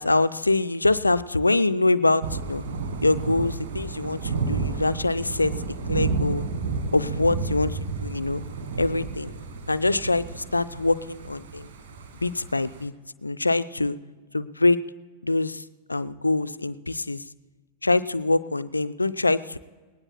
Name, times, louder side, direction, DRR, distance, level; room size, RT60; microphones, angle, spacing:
voice 1, 0.0-2.6 3.0-6.5 6.9-8.4 8.8-9.3 9.7-11.7 12.2-12.9 13.2-14.0 14.3-14.8 15.2-17.2 17.8-19.6, left 2 dB, 80° left, 14 dB, 0.4 m, -24 dB
Thunder / Rain, 2.2-12.8, right 4 dB, 55° right, 1.5 m, -31 dB
19.5 x 18.5 x 2.3 m, 1.3 s
figure-of-eight pair, 90°, 0 cm